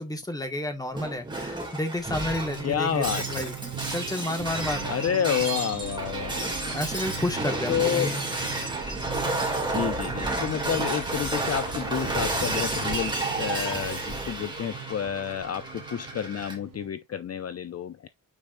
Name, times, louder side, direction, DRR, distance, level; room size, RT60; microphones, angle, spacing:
voice 1, 0.0-3.6 3.9-4.9 6.7-8.2, left 1 dB, 10° left, 1.7 m, -31 dB
Shatter, 0.9-16.5, right 2 dB, 15° right, 2.7 m, -31 dB
sound 1, 2.4-16.9, right 7 dB, 70° right, 2.0 m, -39 dB
voice 2, 2.6-3.5 4.8-6.5 7.7-8.1 9.7-18.1, left 9 dB, 50° left, 0.5 m, -29 dB
9.0 x 4.7 x 2.6 m
wide cardioid pair, 170°, 33 cm